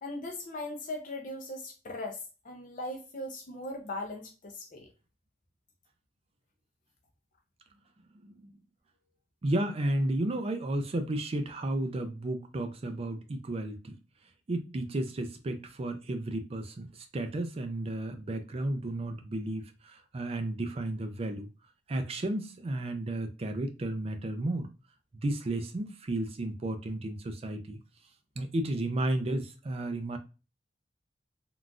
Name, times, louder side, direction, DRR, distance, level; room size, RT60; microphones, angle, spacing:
voice 1, 0.0-4.9, left 1 dB, 45° left, 0.5 m, -39 dB
voice 2, 8.2-8.6 9.4-13.9 14.5-21.5 21.9-24.7 25.1-27.8 28.4-30.2, right 1 dB, 35° right, 0.4 m, -33 dB
3.8 x 2.4 x 2.2 m
head